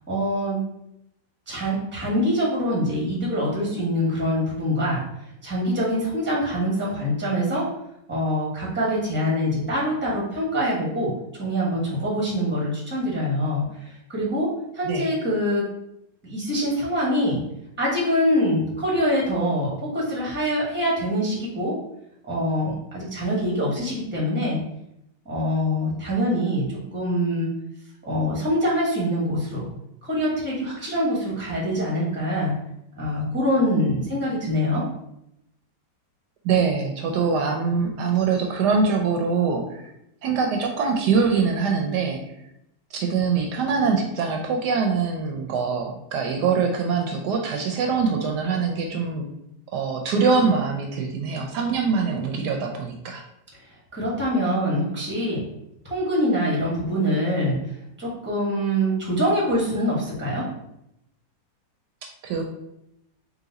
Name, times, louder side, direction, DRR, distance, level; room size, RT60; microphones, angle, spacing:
voice 1, 0.1-0.6 1.5-5.0 5.4-7.7 8.1-14.5 14.7-15.7 16.2-17.4 17.8-21.8 22.3-24.6 25.2-27.5 28.0-29.7 30.0-32.5 33.0-34.8 53.9-55.4 55.8-57.6 58.0-60.5, equal, 10° right, -4 dB, 0.9 m, -24 dB
voice 2, 36.4-39.9 40.2-42.2 42.9-49.3 49.7-53.2 62.0-62.4, right 5 dB, 75° right, 2 dB, 1.1 m, -23 dB
4.0 x 2.5 x 3.9 m, 0.81 s
omnidirectional pair, 1.9 m